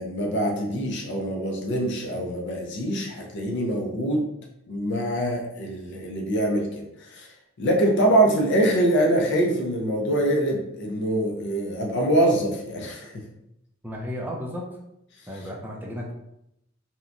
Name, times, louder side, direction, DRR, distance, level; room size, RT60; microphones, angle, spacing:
voice 1, 0.0-4.3 4.7-7.3 7.6-13.3, right 1 dB, 60° left, 1 dB, 0.5 m, -24 dB
voice 2, 13.8-14.7 15.3-16.1, equal, 10° right, -2 dB, 0.4 m, -33 dB
2.8 x 2.1 x 2.5 m, 0.82 s
head